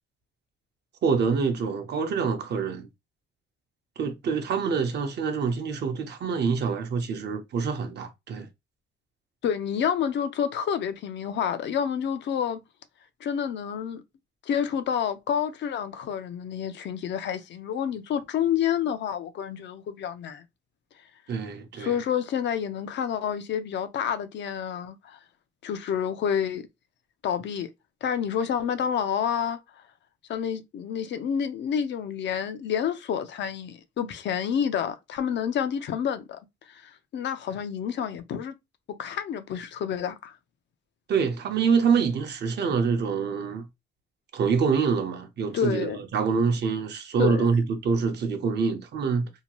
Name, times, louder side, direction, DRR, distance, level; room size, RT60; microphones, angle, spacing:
voice 1, 1.0-2.9 4.0-8.5 21.3-21.9 41.1-43.6 44.3-49.3, right 5 dB, 60° right, 0.7 m, -26 dB
voice 2, 9.4-12.6 13.2-14.0 14.5-20.4 21.7-25.2 25.6-26.6 27.2-27.7 28.0-29.6 30.3-36.4 36.7-38.5 39.0-40.3 45.5-46.0 47.2-47.5, left 8 dB, 65° left, 0.5 m, -29 dB
2.8 x 2.2 x 2.9 m
cardioid pair, 90°, 20 cm